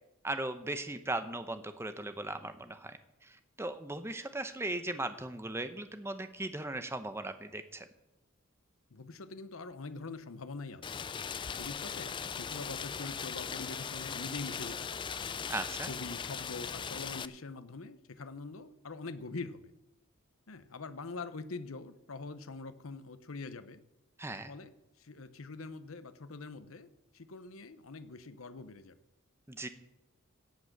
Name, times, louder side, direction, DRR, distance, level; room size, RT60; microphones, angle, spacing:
voice 1, 0.2-7.9 15.5-15.9 24.2-24.5 29.5-29.7, right 2 dB, 10° right, 10 dB, 0.8 m, -38 dB
voice 2, 8.9-10.8 11.5-15.0 15.9-19.7 20.5-23.8 24.5-24.7 25.0-26.9 27.1-29.0, left 3 dB, 80° left, 12 dB, 0.8 m, -44 dB
Rain, 10.8-17.3, left 6 dB, 25° left, 0.3 m, -39 dB
17.0 x 6.1 x 6.7 m, 0.92 s
head